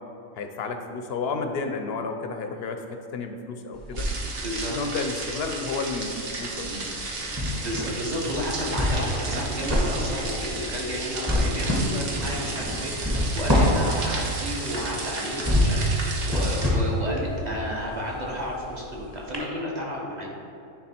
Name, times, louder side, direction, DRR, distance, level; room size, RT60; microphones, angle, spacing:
voice 1, 0.4-4.1 4.7-6.9, left 4 dB, 60° left, 5 dB, 0.7 m, -31 dB
sound 1, 3.7-4.9 5.2-18.9 19.3-19.4, left 1 dB, 20° right, 1.1 m, -27 dB
sound 2, 4.0-16.7, right 3 dB, 60° right, 1.2 m, -33 dB
voice 2, 4.3-4.7 7.6-20.3, equal, 35° right, -3 dB, 1.1 m, -32 dB
10.0 x 3.5 x 4.3 m, 2.9 s
omnidirectional pair, 1.4 m